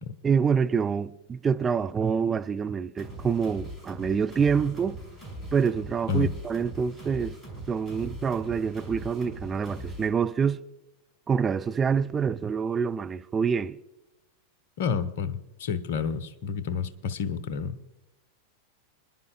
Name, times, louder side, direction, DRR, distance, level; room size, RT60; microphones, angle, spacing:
voice 1, 0.2-5.0 5.5-7.4 7.7-10.6 11.3-13.8, right 6 dB, 20° right, 0.5 m, -26 dB
sound 1, 3.0-10.1, right 1 dB, 10° left, 5.5 m, -41 dB
voice 2, 14.8-17.8, left 6 dB, 55° left, 0.9 m, -30 dB
26.0 x 11.0 x 2.3 m
figure-of-eight pair, 90°, 0 cm